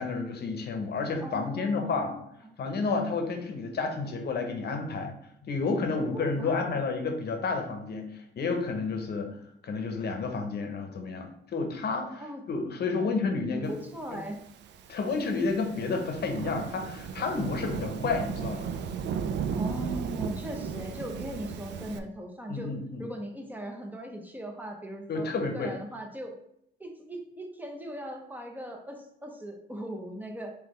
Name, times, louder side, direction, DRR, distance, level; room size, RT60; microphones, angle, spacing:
voice 1, 0.0-2.1 2.6-5.2 5.4-9.3 9.6-13.8 14.1-14.2 14.9-18.7 22.5-23.1 25.1-25.7, left 4 dB, 55° left, 4 dB, 0.8 m, -30 dB
voice 2, 1.2-2.2 6.0-6.8 12.2-12.4 13.0-13.2 13.5-14.4 19.5-22.7 23.0-26.3 26.8-30.5, equal, 10° right, 2 dB, 0.8 m, -39 dB
Thunderstorm / Rain, 14.3-22.0, right 7 dB, 65° right, 0.4 m, -35 dB
3.8 x 3.0 x 3.1 m, 0.75 s
cardioid pair, 90°, 20 cm